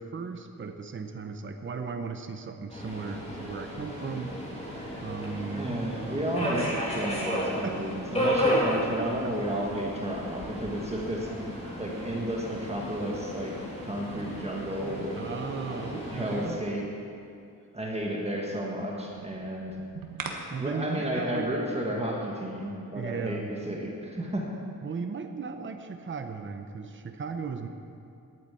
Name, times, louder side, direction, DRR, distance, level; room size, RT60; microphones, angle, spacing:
voice 1, 0.0-4.3 5.0-5.7 6.4-6.5 7.6-7.9 8.5-9.3 15.1-16.6 20.5-21.5 22.9-23.5 24.8-27.7, right 5 dB, 35° right, 6 dB, 0.8 m, -36 dB
Subway metro underground, 2.7-16.5, equal, 20° left, 3.0 m, -33 dB
voice 2, 5.5-13.5 13.8-15.2 15.7-16.8 17.7-19.7 20.6-24.5, right 1 dB, 20° right, -2 dB, 1.7 m, -32 dB
sound 1, 13.9-16.3 19.1-20.3, right 5 dB, 75° right, 1.5 m, -43 dB
11.0 x 9.5 x 8.5 m, 2.6 s
wide cardioid pair, 155°, 34 cm